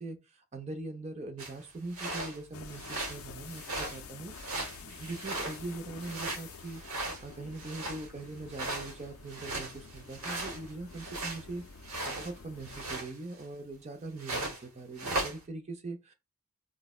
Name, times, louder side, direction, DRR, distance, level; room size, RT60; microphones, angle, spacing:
voice 1, 0.0-6.8 7.2-11.6 12.0-16.1, right 2 dB, 30° right, 0.5 m, -42 dB
sound 1, 1.4-1.5 1.9-2.4 2.7-3.2 3.5-4.0 4.3-5.7 6.0-8.1 8.5-11.4 11.8-12.3 12.6-13.4 14.2-14.6 15.0-15.4, right 2 dB, 85° right, 1.0 m, -37 dB
sound 2, 2.5-13.0, left 5 dB, 80° left, 0.4 m, -49 dB
3.8 x 2.1 x 2.3 m
head